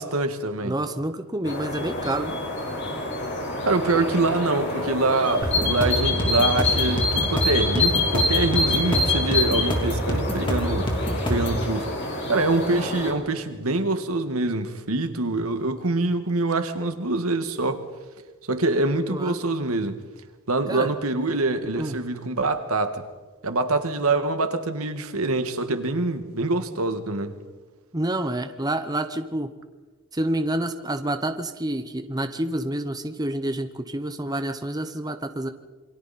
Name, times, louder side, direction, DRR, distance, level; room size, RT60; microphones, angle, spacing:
voice 1, 0.0-0.8 3.6-10.9 11.3-12.0 12.3-17.9 18.5-20.0 20.5-23.0 23.4-27.3, right 2 dB, 80° right, 1.7 m, -25 dB
voice 2, 0.6-2.4 19.1-19.3 20.7-20.9 21.8-21.9 27.9-29.5 30.1-35.5, right 1 dB, 20° right, 0.9 m, -28 dB
sound 1, 1.4-13.1, left 2 dB, 55° left, 5.0 m, -26 dB
sound 2, 5.4-11.6, equal, 20° left, 3.3 m, -26 dB
28.0 x 24.0 x 4.3 m
head